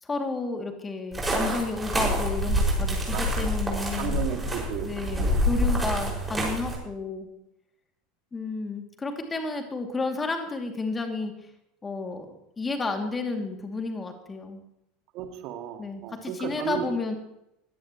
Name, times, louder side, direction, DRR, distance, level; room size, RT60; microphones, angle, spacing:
voice 1, 0.0-4.2 4.8-7.3 8.3-11.3 11.8-14.6 15.8-17.2, left 3 dB, 20° left, 4 dB, 2.6 m, -31 dB
sound 1, 1.1-6.8, equal, 15° right, 5.9 m, -27 dB
voice 2, 3.1-3.5 4.0-4.9 5.2-5.5 15.1-16.9, right 10 dB, 50° right, 5 dB, 2.1 m, -34 dB
21.5 x 16.5 x 3.1 m, 0.82 s
figure-of-eight pair, 75°, 0 cm